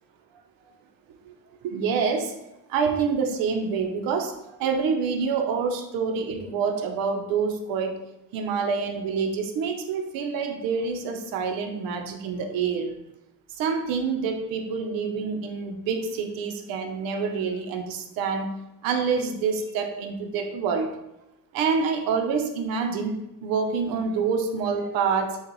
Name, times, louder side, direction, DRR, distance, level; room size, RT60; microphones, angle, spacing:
voice 1, 1.6-2.3 2.7-8.0 8.3-12.9 13.5-18.5 18.8-20.9 21.5-25.4, right 5 dB, 90° right, 4 dB, 0.8 m, -27 dB
6.5 x 2.3 x 3.0 m, 0.90 s
cardioid pair, 155°, 34 cm